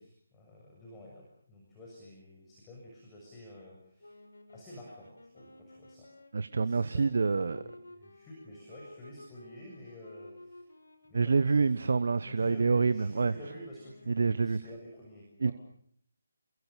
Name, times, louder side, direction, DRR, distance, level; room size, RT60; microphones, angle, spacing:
voice 1, 0.0-4.2 4.5-6.1 6.6-10.7 11.1-11.8 12.2-15.5, left 1 dB, 15° left, 6.9 m, -50 dB
sound 1, 4.0-14.3, left 1 dB, 75° left, 5.7 m, -54 dB
voice 2, 6.3-7.6 11.1-13.3 14.1-14.6 15.4-15.5, right 4 dB, 55° right, 1.0 m, -27 dB
28.5 x 23.0 x 6.7 m
figure-of-eight pair, 150°, 0 cm